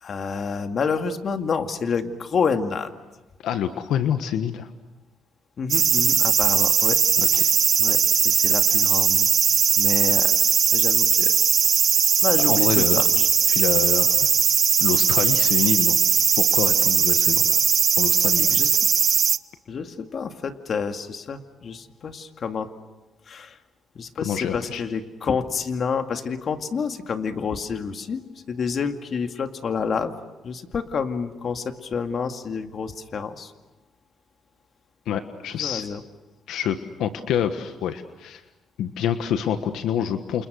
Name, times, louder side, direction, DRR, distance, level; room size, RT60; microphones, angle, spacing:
voice 1, 0.0-2.9 5.6-7.0 7.3-7.5 7.8-9.3 9.8-10.4 10.7-11.4 12.2-13.3 18.5-18.8 19.7-22.7 23.3-23.6 24.0-30.2 30.4-33.5 35.6-36.0, left 5 dB, 50° left, 6 dB, 2.2 m, -28 dB
voice 2, 3.4-4.7 7.2-7.5 12.5-13.0 13.5-14.3 14.8-16.0 16.4-17.6 18.0-18.7 24.2-24.8 35.1-35.9 36.5-38.4 38.8-40.5, left 9 dB, 85° left, 8 dB, 1.4 m, -27 dB
sound 1, 5.7-19.4, right 7 dB, 55° right, 0.9 m, -19 dB
29.0 x 28.5 x 6.4 m, 1.1 s
cardioid pair, 90°, 0 cm